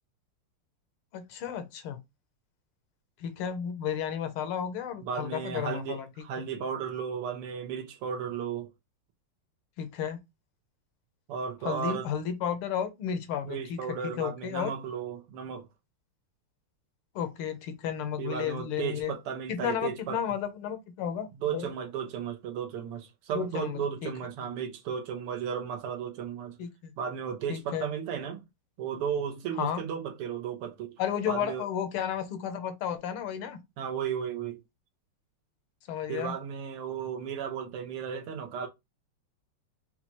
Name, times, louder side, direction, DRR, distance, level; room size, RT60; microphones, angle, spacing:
voice 1, 1.1-2.0 3.2-6.1 6.4-6.5 9.8-10.2 11.6-14.7 17.2-19.1 19.5-21.7 23.3-24.1 26.6-26.9 27.5-27.9 29.6-29.8 31.0-33.6 35.9-36.3, left 8 dB, 75° left, 1.6 m, -33 dB
voice 2, 5.0-8.7 11.3-12.1 13.4-15.7 18.2-20.2 21.4-26.6 27.0-28.4 28.8-31.0 31.3-31.6 33.8-34.6 36.1-38.7, right 7 dB, 85° right, 1.8 m, -34 dB
5.6 x 2.3 x 3.0 m
omnidirectional pair, 2.4 m